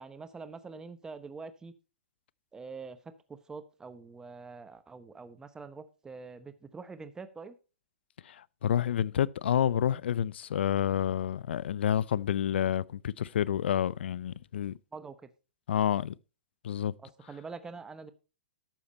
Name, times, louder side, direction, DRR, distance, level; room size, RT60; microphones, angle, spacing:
voice 1, 0.0-1.7 2.5-7.6 14.9-15.3 17.3-18.1, right 4 dB, 10° right, 0.9 m, -45 dB
voice 2, 8.2-14.8 15.7-16.2 16.6-16.9, left 10 dB, 70° left, 0.5 m, -29 dB
12.0 x 7.2 x 4.2 m
hypercardioid pair, 130°, 6 cm